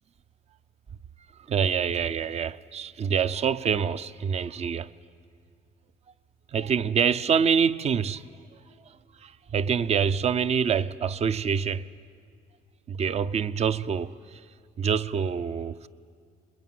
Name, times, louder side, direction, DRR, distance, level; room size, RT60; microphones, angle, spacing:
voice 1, 1.5-4.9 6.5-8.2 9.2-11.9 12.9-14.4 14.8-15.9, right 7 dB, 40° right, 0.6 m, -26 dB
25.0 x 21.5 x 9.3 m
cardioid pair, 110°, 17 cm